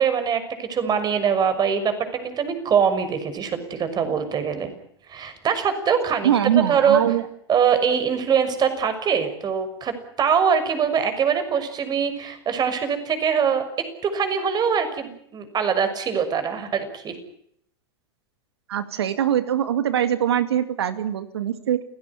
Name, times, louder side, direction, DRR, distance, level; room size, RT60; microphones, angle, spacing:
voice 1, 0.0-1.9 2.2-4.7 5.1-7.0 7.5-17.2, right 7 dB, 30° right, 10 dB, 6.2 m, -23 dB
voice 2, 6.2-7.3 18.7-21.8, right 10 dB, 80° right, 11 dB, 2.2 m, -22 dB
29.0 x 17.0 x 9.8 m, 0.70 s
hypercardioid pair, 100°, 13 cm